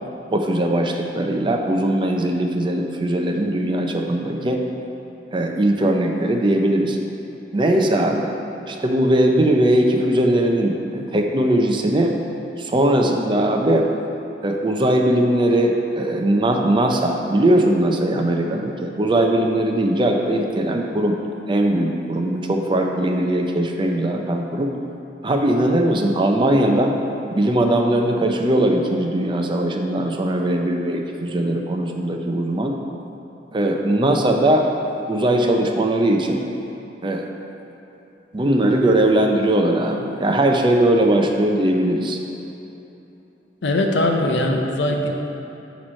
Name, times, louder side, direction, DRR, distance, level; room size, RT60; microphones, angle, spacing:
voice 1, 0.3-4.6 5.3-7.0 7.5-8.3 8.7-12.1 12.6-13.8 14.4-21.2 21.5-24.7 25.2-27.0 27.4-32.8 33.5-34.7 35.1-36.4 37.0-37.2 38.3-42.2, right 1 dB, 25° right, 2 dB, 0.5 m, -19 dB
voice 2, 43.6-45.1, left 1 dB, 75° left, 3 dB, 0.7 m, -20 dB
8.4 x 3.1 x 6.2 m, 3.0 s
head